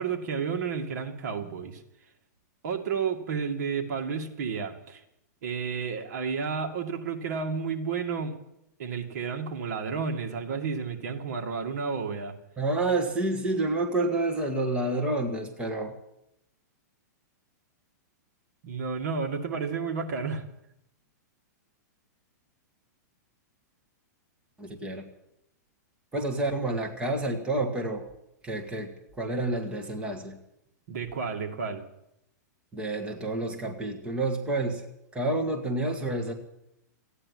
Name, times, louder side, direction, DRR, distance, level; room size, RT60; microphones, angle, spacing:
voice 1, 0.0-1.8 2.6-5.0 5.4-8.4 8.8-12.3 18.6-20.4 30.9-31.8, right 5 dB, 60° right, 4 dB, 2.2 m, -31 dB
voice 2, 12.6-15.9 24.6-25.0 26.1-28.0 28.4-30.4 32.7-34.8 35.1-36.3, right 2 dB, 10° right, 2 dB, 1.8 m, -29 dB
15.0 x 9.8 x 9.5 m, 0.82 s
hypercardioid pair, 145°, 10 cm